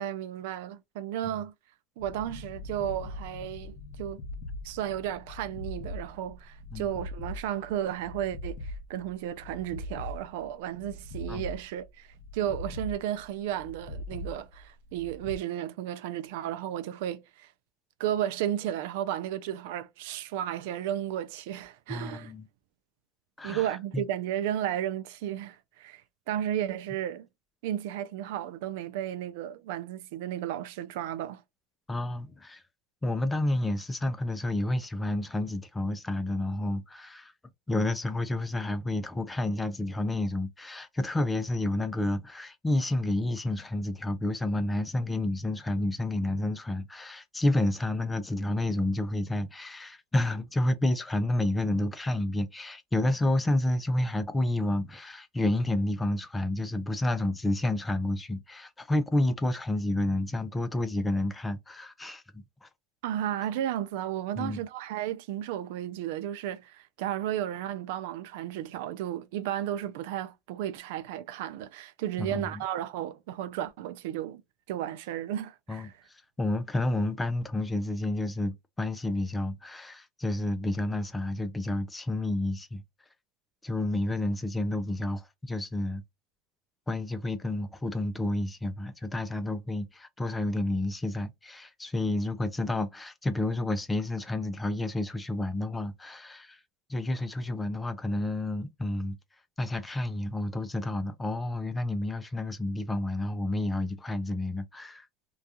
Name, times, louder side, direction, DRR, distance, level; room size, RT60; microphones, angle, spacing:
voice 1, 0.0-1.5 2.0-4.2 4.6-12.1 12.3-17.5 18.0-22.3 23.4-26.0 26.3-27.3 27.6-31.4 63.0-74.4 74.7-75.9, right 11 dB, 75° right, 0.3 m, -33 dB
sound 1, 2.0-15.4, left 1 dB, 65° left, 0.6 m, -41 dB
voice 2, 21.9-22.5 23.4-24.0 31.9-32.6 33.0-37.3 37.7-62.7 64.4-64.6 72.2-72.6 75.7-82.8 83.6-86.0 86.9-96.6 96.9-99.2 99.6-105.1, left 1 dB, 10° left, 0.4 m, -30 dB
2.3 x 2.3 x 2.7 m
supercardioid pair, 115°, 0 cm